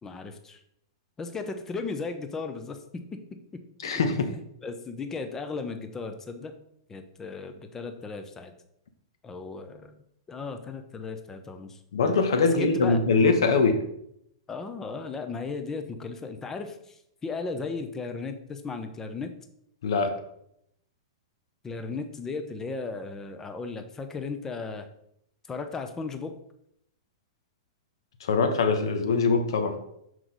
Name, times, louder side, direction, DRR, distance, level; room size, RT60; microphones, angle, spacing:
voice 1, 0.0-0.6 1.2-3.2 3.8-6.5 6.9-8.5 9.2-11.8 12.4-13.0 14.5-19.3 21.6-24.9 25.5-26.3, left 4 dB, 15° left, 7 dB, 0.8 m, -36 dB
voice 2, 3.8-4.3 11.9-13.8 19.8-20.1 28.2-29.8, left 4 dB, 75° left, 7 dB, 1.1 m, -23 dB
6.0 x 4.7 x 4.0 m, 0.75 s
hypercardioid pair, 130°, 3 cm